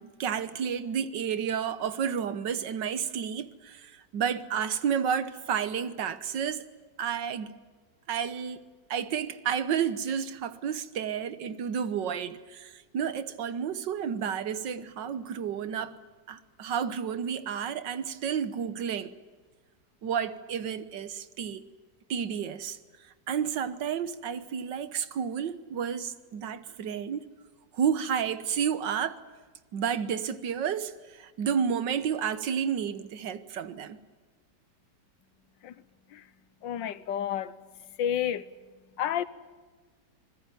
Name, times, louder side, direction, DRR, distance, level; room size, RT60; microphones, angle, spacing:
voice 1, 0.0-6.7 7.0-7.5 8.1-8.6 8.9-16.0 16.3-19.1 20.0-21.6 22.1-22.8 23.3-27.3 27.7-29.2 29.7-34.0, right 7 dB, 80° right, 1.8 m, -31 dB
voice 2, 36.6-37.5 38.0-38.5 39.0-39.2, left 10 dB, 90° left, 1.7 m, -30 dB
25.5 x 20.0 x 9.2 m
omnidirectional pair, 1.9 m